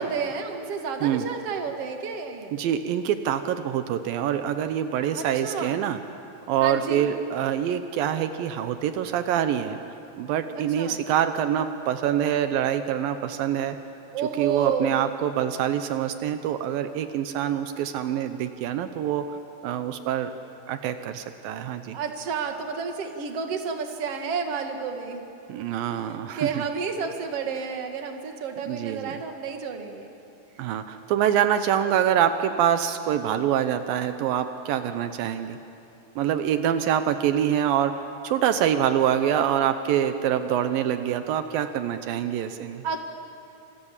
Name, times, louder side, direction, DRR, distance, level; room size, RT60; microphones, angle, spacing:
voice 1, 0.0-2.6 5.1-5.8 6.6-7.1 10.6-11.0 14.1-15.0 21.9-25.2 25.9-30.1 42.8-43.0, right 6 dB, 45° right, 4 dB, 2.6 m, -31 dB
voice 2, 2.5-6.0 6.5-9.8 10.2-13.8 14.4-19.3 19.6-20.3 20.7-22.0 25.5-26.5 28.6-29.1 30.6-35.6 36.2-37.9 38.2-42.8, right 10 dB, 80° right, 9 dB, 2.6 m, -25 dB
29.5 x 27.0 x 7.3 m, 2.7 s
omnidirectional pair, 4.1 m